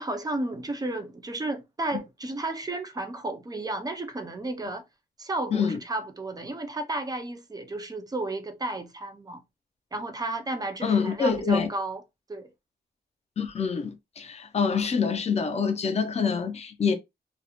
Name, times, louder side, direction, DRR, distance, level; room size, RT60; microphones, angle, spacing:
voice 1, 0.0-4.9 5.2-9.4 9.9-12.0 12.3-12.5, right 2 dB, 20° right, 0.4 m, -33 dB
voice 2, 10.8-11.7 13.4-16.9, left 5 dB, 40° left, 0.5 m, -26 dB
2.3 x 2.0 x 2.8 m
wide cardioid pair, 125°, 18 cm